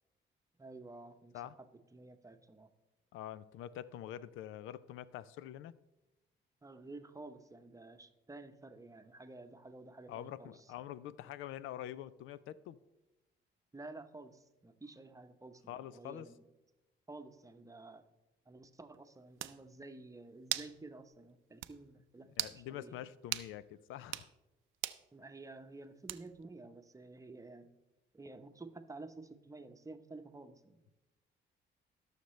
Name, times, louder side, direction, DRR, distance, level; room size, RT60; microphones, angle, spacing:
voice 1, 0.6-2.7 6.6-10.7 13.7-16.4 17.1-18.1 18.5-23.1 25.1-27.7 28.1-30.8, right 2 dB, 15° right, 8 dB, 0.8 m, -52 dB
voice 2, 3.1-5.7 10.1-12.8 15.7-16.3 22.4-24.3, left 12 dB, 90° left, 17 dB, 0.4 m, -45 dB
sound 1, 18.9-19.0 19.4-19.6 20.5-20.8 21.1-21.2 21.6-21.8 22.3-22.6 23.3-23.5 24.0-24.3 24.8-25.0 26.1-26.4, right 15 dB, 85° right, 0.5 m, -38 dB
18.0 x 6.6 x 3.2 m, 1.0 s
cardioid pair, 90°, 20 cm